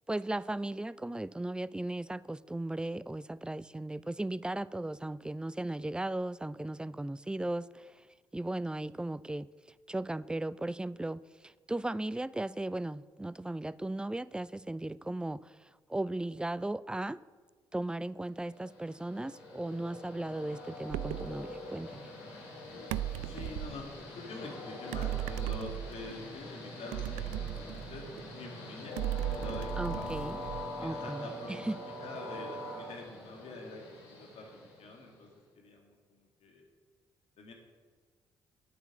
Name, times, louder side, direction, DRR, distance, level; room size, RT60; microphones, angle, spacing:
voice 1, 0.1-8.1 8.3-9.5 9.9-17.2 17.7-22.1 29.8-30.4 30.8-31.8, right 1 dB, 5° right, 0.4 m, -36 dB
Train, 18.5-35.3, left 1 dB, 80° left, 2.4 m, -44 dB
sound 1, 20.9-21.4 22.9-23.8 24.9-26.2 26.9-28.3 29.0-30.9, right 14 dB, 75° right, 0.4 m, -36 dB
voice 2, 23.2-28.9 29.3-30.0 30.8-31.8 32.0-36.7 37.4-37.5, left 3 dB, 60° left, 2.7 m, -46 dB
9.5 x 9.1 x 6.3 m
hypercardioid pair, 45°, 12 cm